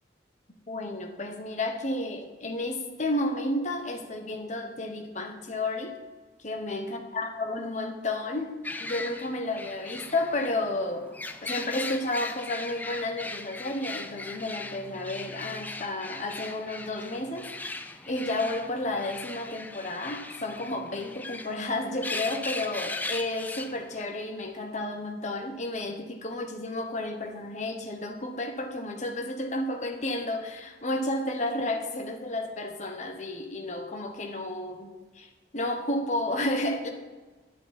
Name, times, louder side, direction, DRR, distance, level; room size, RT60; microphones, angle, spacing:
voice 1, 0.7-6.0 6.4-11.1 11.4-36.9, left 2 dB, 40° left, 4 dB, 1.1 m, -32 dB
sound 1, 8.6-24.1, left 2 dB, 10° left, 0.4 m, -39 dB
11.0 x 6.5 x 4.3 m, 1.3 s
head